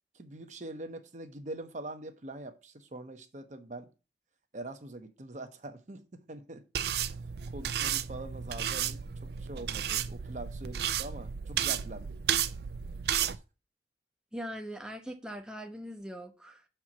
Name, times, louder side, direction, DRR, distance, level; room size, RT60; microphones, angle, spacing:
voice 1, 0.1-3.9 4.5-6.6 7.5-9.0 9.4-12.2 13.2-13.4, right 2 dB, 45° right, 0.8 m, -43 dB
sound 1, 6.7-13.3, right 9 dB, 65° right, 0.4 m, -33 dB
voice 2, 14.3-16.7, equal, 5° right, 0.6 m, -41 dB
6.2 x 4.4 x 6.0 m
head